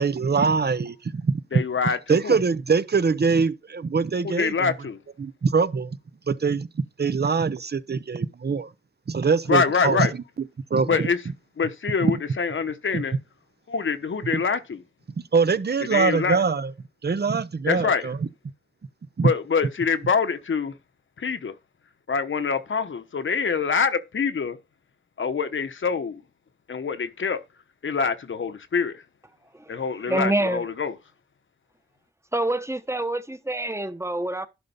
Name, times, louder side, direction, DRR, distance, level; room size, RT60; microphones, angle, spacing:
voice 1, 0.0-1.4 2.1-4.7 5.2-6.0 6.3-8.7 9.1-10.1 10.7-11.0 12.0-12.1 12.9-13.0 15.3-16.7 17.0-18.2 19.2-19.3, right 5 dB, 55° right, 0.8 m, -23 dB
voice 2, 1.5-2.4 4.2-5.0 9.5-10.1 10.9-11.2 11.6-13.2 13.7-14.8 15.9-16.4 17.7-18.0 19.2-20.7 21.2-21.5 22.1-24.6 25.2-26.2 26.7-27.4 27.8-29.0 29.7-30.9, left 5 dB, 80° left, 1.1 m, -25 dB
voice 3, 30.1-30.6 32.3-34.5, right 1 dB, 15° right, 1.0 m, -26 dB
11.5 x 4.0 x 5.4 m
wide cardioid pair, 65°, 20 cm